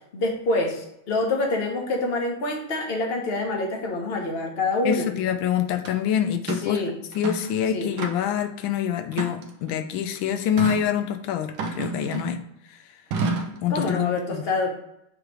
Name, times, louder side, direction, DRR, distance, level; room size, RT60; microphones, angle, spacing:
voice 1, 0.1-5.1 6.6-6.9 7.7-7.9 13.7-14.7, left 2 dB, 35° left, 1 dB, 1.2 m, -26 dB
voice 2, 4.8-6.8 7.1-12.4 13.6-14.4, left 9 dB, 90° left, 7 dB, 1.4 m, -26 dB
sound 1, 5.8-5.9 6.5-6.7 7.1-7.5 8.0-8.4 9.1-9.8 10.6-10.9 11.6-12.4 13.1-13.6, right 3 dB, 75° right, 1.5 m, -29 dB
7.6 x 3.3 x 4.7 m, 0.81 s
omnidirectional pair, 2.1 m